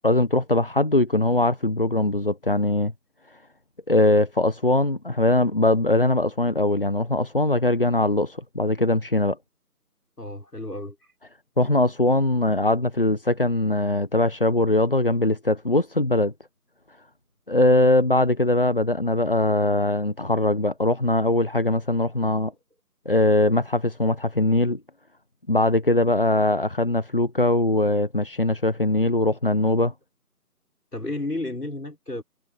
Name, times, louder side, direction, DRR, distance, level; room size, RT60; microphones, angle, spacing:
voice 1, 0.0-2.9 3.9-9.4 11.6-16.3 17.5-22.5 23.0-24.8 25.5-29.9, left 2 dB, 35° left, 1.0 m, -21 dB
voice 2, 10.2-11.0 30.9-32.2, left 2 dB, 85° left, 5.5 m, -32 dB
figure-of-eight pair, 165°, 47 cm